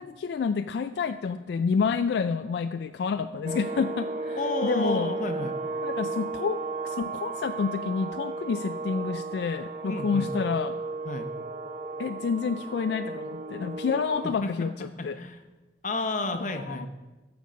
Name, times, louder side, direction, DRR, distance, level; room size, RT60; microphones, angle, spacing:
voice 1, 0.0-5.1 5.8-10.8 12.0-15.2 16.6-16.9, left 5 dB, 70° left, 9 dB, 0.3 m, -29 dB
sound 1, 3.4-14.4, right 3 dB, 40° right, 0.8 m, -34 dB
voice 2, 4.4-5.5 9.9-10.3 11.0-11.3 14.4-14.5 15.0-15.4 15.8-16.9, left 2 dB, 45° left, 7 dB, 0.8 m, -31 dB
14.0 x 5.2 x 5.2 m, 1.2 s
head